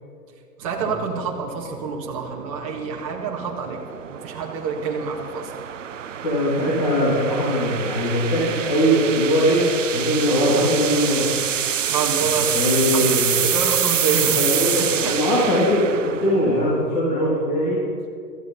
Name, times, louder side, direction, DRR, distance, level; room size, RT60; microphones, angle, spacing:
voice 1, 0.6-3.8 4.1-5.5 11.9-12.6 12.9-14.4 14.7-15.2, right 5 dB, 20° right, -2 dB, 1.8 m, -27 dB
sound 1, 0.7-16.9, right 9 dB, 50° right, 0.6 m, -27 dB
voice 2, 6.2-11.3 12.2-12.3 12.5-13.3 14.3-17.8, equal, 30° left, -7 dB, 3.2 m, -21 dB
16.5 x 14.0 x 5.7 m, 2.4 s
hypercardioid pair, 175°, 49 cm